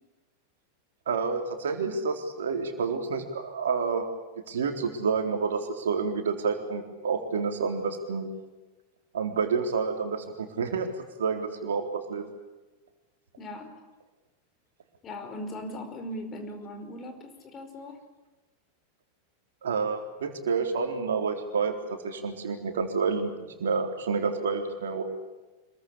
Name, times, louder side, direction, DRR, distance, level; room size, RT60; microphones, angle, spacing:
voice 1, 1.1-4.0 4.5-8.3 9.1-10.9 11.2-12.2 19.6-21.7 22.0-25.0, right 5 dB, 65° right, 4 dB, 3.9 m, -29 dB
voice 2, 13.4-13.8 15.0-18.0, left 1 dB, 25° left, 6 dB, 5.2 m, -39 dB
26.5 x 23.0 x 8.5 m, 1.2 s
figure-of-eight pair, 90°, 0 cm